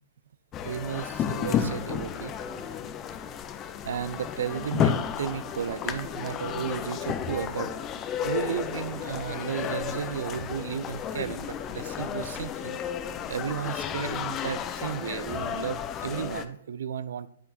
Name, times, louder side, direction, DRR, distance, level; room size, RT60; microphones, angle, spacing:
sound 1, 0.5-16.5, left 8 dB, 25° left, 0.6 m, -32 dB
voice 1, 0.6-2.3 3.8-7.7 8.2-12.8 13.3-17.3, right 8 dB, 65° right, 16 dB, 0.4 m, -33 dB
9.5 x 8.4 x 2.8 m, 0.75 s
hypercardioid pair, 120°, 0 cm